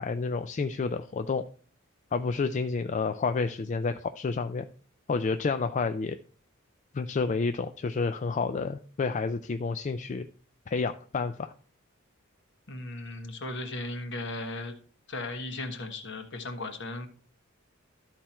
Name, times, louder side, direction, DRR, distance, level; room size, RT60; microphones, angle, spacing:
voice 1, 0.0-1.4 2.1-4.7 5.1-6.2 6.9-10.3 10.7-11.5, left 4 dB, 35° left, 9 dB, 0.3 m, -29 dB
voice 2, 12.7-14.7 15.1-17.1, left 2 dB, 60° left, 6 dB, 1.4 m, -36 dB
13.0 x 4.4 x 4.3 m, 0.43 s
head